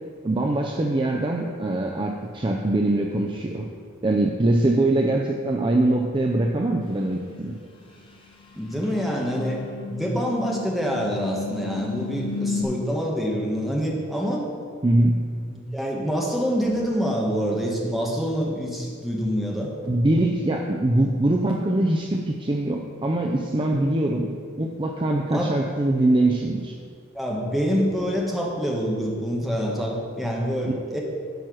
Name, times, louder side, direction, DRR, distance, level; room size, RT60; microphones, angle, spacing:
voice 1, 0.2-3.7 4.0-7.6 14.8-15.2 19.8-24.3 24.6-26.7, right 1 dB, 25° right, 1 dB, 0.5 m, -23 dB
sound 1, 7.2-7.4 8.4-12.6, left 4 dB, 25° left, 1.1 m, -33 dB
voice 2, 8.5-9.6 9.9-14.4 15.5-19.7 25.3-25.6 27.1-31.0, equal, ahead, -3 dB, 1.3 m, -26 dB
10.0 x 4.6 x 6.2 m, 2.1 s
head